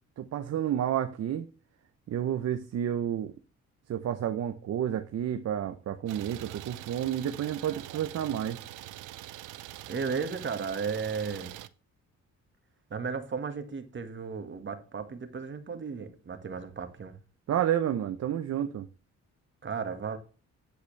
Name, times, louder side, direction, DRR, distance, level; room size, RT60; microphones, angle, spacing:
voice 1, 0.2-1.5 2.1-3.3 3.9-8.6 17.5-18.9, right 10 dB, 55° right, 0.8 m, -30 dB
Idling, 6.1-11.7, right 15 dB, 85° right, 0.7 m, -44 dB
voice 2, 9.9-11.6 12.9-17.2 19.6-20.2, right 5 dB, 40° right, 1.8 m, -34 dB
8.7 x 8.0 x 3.3 m
cardioid pair, 90°, 30 cm